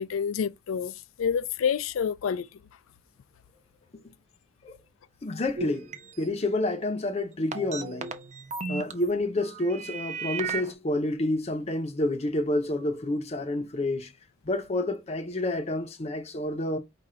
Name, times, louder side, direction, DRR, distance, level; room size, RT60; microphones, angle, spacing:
voice 1, 0.0-2.5, left 7 dB, 80° left, 0.4 m, -28 dB
voice 2, 5.2-5.9 6.2-8.1 8.7-14.1 14.4-16.8, left 2 dB, 30° left, 0.6 m, -29 dB
sound 1, 5.6-6.3 7.5-8.9 9.3-10.7, right 5 dB, 35° right, 0.6 m, -35 dB
4.9 x 2.3 x 4.2 m
head